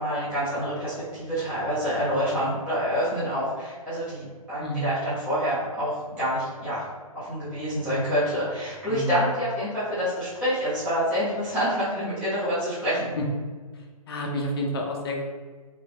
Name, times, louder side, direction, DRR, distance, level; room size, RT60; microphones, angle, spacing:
voice 1, 0.0-6.8 7.1-13.1, equal, 5° right, -14 dB, 0.9 m, -27 dB
voice 2, 4.6-4.9 8.9-9.2 13.2-13.3 13.7-15.3, equal, 40° left, 1 dB, 0.6 m, -30 dB
3.0 x 2.5 x 3.5 m, 1.4 s
hypercardioid pair, 160°, 19 cm